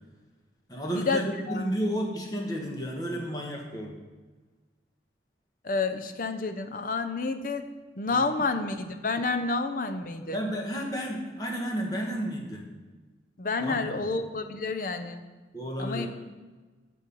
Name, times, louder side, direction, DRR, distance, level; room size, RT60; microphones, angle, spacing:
voice 1, 0.7-3.9 8.1-8.5 10.3-12.7 13.6-14.1 15.5-16.1, equal, 20° left, 0 dB, 1.3 m, -32 dB
voice 2, 5.6-7.7 8.0-10.4 13.4-15.2 15.8-16.1, left 3 dB, 50° left, 8 dB, 0.6 m, -29 dB
9.1 x 5.4 x 5.4 m, 1.3 s
head